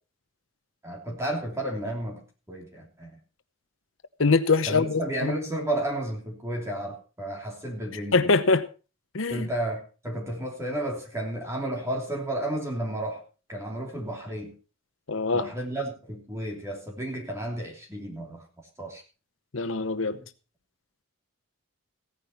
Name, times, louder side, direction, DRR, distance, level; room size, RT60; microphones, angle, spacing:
voice 1, 0.8-3.1 4.7-8.3 9.3-13.2 13.5-14.5 15.3-18.4 18.8-19.0, right 1 dB, 15° right, 3.1 m, -32 dB
voice 2, 4.2-5.3 8.1-8.6 9.1-9.5 15.1-15.5 19.5-20.2, left 4 dB, 70° left, 0.9 m, -23 dB
16.0 x 9.8 x 4.4 m
head